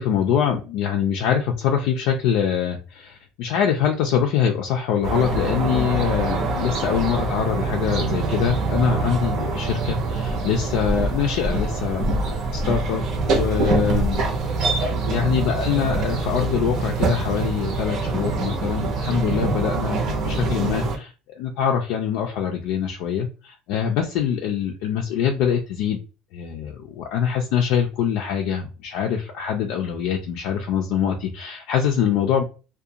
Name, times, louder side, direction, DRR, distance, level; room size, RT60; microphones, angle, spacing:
voice 1, 0.0-12.2 12.5-14.2 14.7-26.0 26.3-32.4, left 8 dB, 70° left, 1 dB, 0.4 m, -24 dB
sound 1, 5.0-21.0, right 3 dB, 55° right, 0.7 m, -24 dB
2.4 x 2.2 x 2.7 m, 0.33 s
cardioid pair, 150°, 0 cm